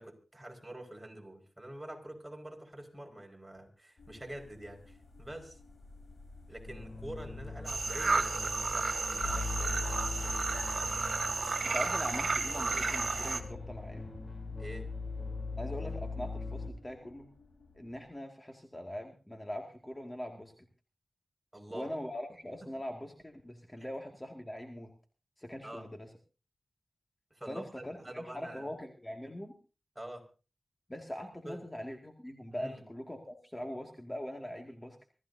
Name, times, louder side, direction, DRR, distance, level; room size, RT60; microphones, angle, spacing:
voice 1, 0.0-5.6 6.5-10.0 14.6-14.9 21.5-21.9 25.6-25.9 27.3-28.7 30.0-30.2 31.4-31.6 32.5-32.8, right 1 dB, 10° right, 2 dB, 5.2 m, -46 dB
sound 1, 4.0-18.1, left 2 dB, 75° left, 3.8 m, -53 dB
sound 2, 6.7-16.7, left 3 dB, 60° left, 3.4 m, -40 dB
sound 3, 7.7-13.4, right 4 dB, 65° right, 2.1 m, -32 dB
voice 2, 11.6-14.1 15.6-17.3 17.7-20.5 21.7-24.9 25.4-26.1 27.5-29.5 30.9-35.0, equal, 20° left, 2 dB, 2.2 m, -42 dB
25.0 x 14.5 x 2.7 m, 0.35 s
cardioid pair, 45°, 0 cm